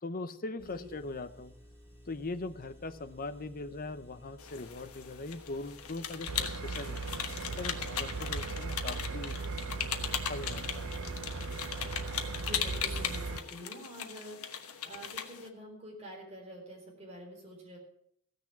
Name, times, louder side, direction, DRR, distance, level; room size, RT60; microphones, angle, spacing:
voice 1, 0.0-1.5 2.0-7.0 7.4-9.4 10.2-10.9, left 2 dB, 40° left, 10 dB, 0.8 m, -40 dB
Engine, 0.6-6.4, equal, 10° right, 3.6 m, -55 dB
sound 1, 4.4-15.5, left 8 dB, 85° left, 1.3 m, -38 dB
sound 2, 6.3-13.4, right 3 dB, 60° right, 0.8 m, -38 dB
voice 2, 12.3-14.4 14.8-17.8, equal, 30° right, -1 dB, 4.4 m, -47 dB
15.5 x 6.6 x 7.3 m, 0.69 s
head